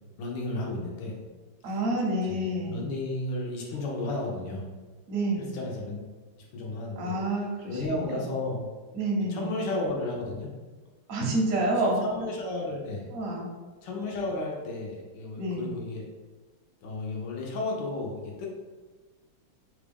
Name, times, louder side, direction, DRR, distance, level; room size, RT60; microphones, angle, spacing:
voice 1, 0.2-1.2 1.7-1.8 2.2-4.7 5.4-6.0 6.5-7.2 7.7-8.6 9.3-10.5 11.8-13.1 13.8-16.0 16.8-18.5, left 2 dB, 70° left, -1 dB, 1.2 m, -33 dB
voice 2, 1.6-2.8 5.1-5.5 7.0-8.2 8.9-9.5 11.1-12.0 13.1-13.5 15.3-15.7, right 1 dB, 60° right, -2 dB, 0.9 m, -28 dB
3.5 x 2.4 x 3.4 m, 1.3 s
omnidirectional pair, 2.3 m